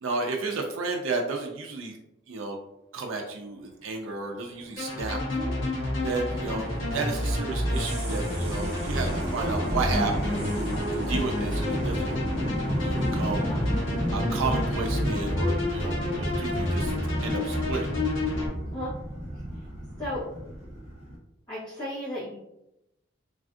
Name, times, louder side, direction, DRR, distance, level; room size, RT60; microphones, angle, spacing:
voice 1, 0.0-1.9 2.3-2.6 2.9-5.2 6.0-6.6 6.9-10.5 10.9-12.1 12.8-13.5 14.1-16.9 17.2-17.9, right 3 dB, 85° right, 1 dB, 0.4 m, -32 dB
sound 1, 4.6-21.2, equal, 35° right, 0.8 m, -33 dB
sound 2, 4.8-18.5, left 1 dB, 85° left, 1.1 m, -29 dB
voice 2, 21.5-22.4, left 1 dB, 20° left, -12 dB, 0.8 m, -34 dB
3.3 x 2.5 x 2.4 m, 0.87 s
head